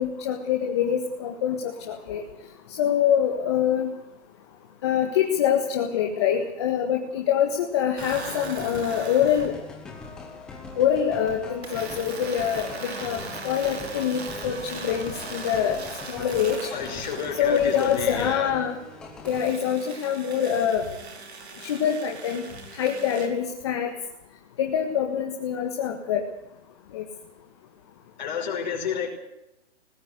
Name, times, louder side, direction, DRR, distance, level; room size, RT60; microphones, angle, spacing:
voice 1, 0.0-2.2 2.8-3.9 4.8-9.5 10.8-15.8 16.1-16.7 17.4-18.8 19.2-20.8 21.6-22.4 22.7-23.9 24.6-26.2 26.9-27.0, left 9 dB, 25° left, 2 dB, 1.6 m, -25 dB
sound 1, 8.0-19.5, left 3 dB, ahead, 0.7 m, -42 dB
sound 2, 8.0-9.5 11.6-18.4 19.2-23.3, right 4 dB, 65° right, 4.9 m, -40 dB
voice 2, 16.7-18.5 28.2-29.1, left 7 dB, 40° left, 3 dB, 5.7 m, -30 dB
19.0 x 17.5 x 8.2 m, 0.87 s
hypercardioid pair, 170°, 35 cm